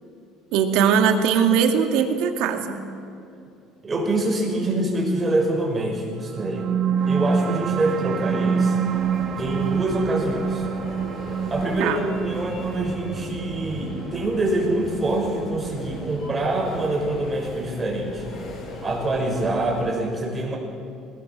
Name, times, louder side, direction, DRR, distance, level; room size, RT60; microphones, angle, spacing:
voice 1, 0.5-2.8 11.8-12.0, right 7 dB, 75° right, 6 dB, 2.2 m, -20 dB
voice 2, 3.8-6.7 7.1-8.8 9.4-10.7 11.5-18.3 18.8-20.6, right 2 dB, 25° right, 0 dB, 5.9 m, -25 dB
sound 1, 6.2-17.2, right 6 dB, 45° right, 1.9 m, -27 dB
sound 2, 8.8-19.9, left 2 dB, 50° left, 6.1 m, -38 dB
21.0 x 18.0 x 7.7 m, 2.6 s
cardioid pair, 120°, 0 cm